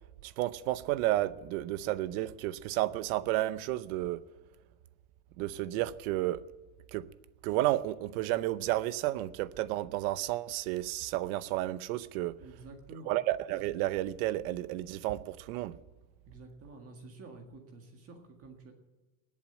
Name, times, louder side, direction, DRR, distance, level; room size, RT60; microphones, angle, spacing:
voice 1, 0.2-4.2 5.4-6.4 6.9-7.1 7.4-12.4 13.1-15.8, right 15 dB, 60° right, 0.8 m, -32 dB
voice 2, 12.4-13.1 16.3-18.7, right 3 dB, 30° right, 1.8 m, -50 dB
20.0 x 7.6 x 8.7 m
cardioid pair, 175°, 48 cm